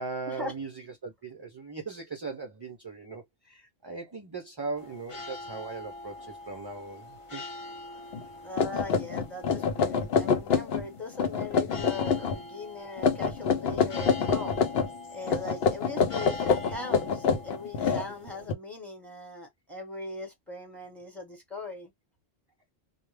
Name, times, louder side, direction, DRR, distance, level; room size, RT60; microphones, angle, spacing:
voice 1, 0.0-7.4, right 3 dB, 40° right, 0.4 m, -39 dB
sound 1, 4.8-18.5, left 2 dB, 40° left, 0.5 m, -44 dB
sound 2, 8.1-8.2 8.6-10.9 11.1-12.4 13.0-14.9 15.3-18.5, left 5 dB, 75° left, 0.8 m, -26 dB
voice 2, 8.4-14.6 15.1-21.9, left 2 dB, ahead, 1.0 m, -40 dB
2.3 x 2.1 x 3.1 m
omnidirectional pair, 1.1 m